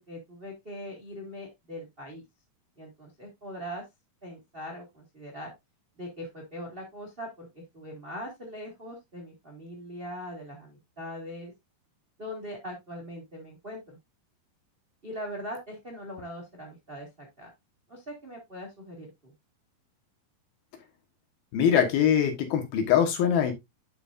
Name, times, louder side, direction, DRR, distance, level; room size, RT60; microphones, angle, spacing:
voice 1, 0.0-2.2 2.8-3.8 4.2-5.5 6.0-11.5 12.2-14.0 15.0-17.5 17.9-19.3, equal, 30° right, 0 dB, 1.0 m, -41 dB
voice 2, 21.5-23.5, left 8 dB, 70° left, 5 dB, 3.2 m, -23 dB
11.0 x 5.4 x 2.5 m, 0.20 s
omnidirectional pair, 4.6 m